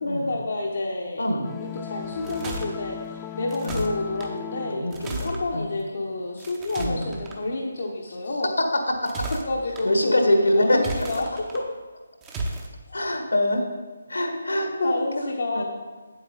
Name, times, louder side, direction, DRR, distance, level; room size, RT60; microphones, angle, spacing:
voice 1, 0.0-1.3 1.6-8.5 9.3-11.6 12.9-13.1 14.8-15.6, left 2 dB, 50° left, -1 dB, 1.0 m, -29 dB
sound 1, 1.4-6.0, left 10 dB, 15° left, 0.3 m, -38 dB
sound 2, 2.0-2.7 3.5-4.3 4.9-5.4 6.4-7.4 8.9-9.8 10.7-11.6 12.2-12.7, right 2 dB, 15° right, 0.9 m, -34 dB
voice 2, 4.7-5.7 6.8-7.1 9.8-10.8 12.9-13.7 14.1-15.3 15.5-15.6, left 1 dB, 70° left, 4 dB, 1.5 m, -24 dB
8.5 x 7.9 x 4.0 m, 1.3 s
figure-of-eight pair, 145°, 0 cm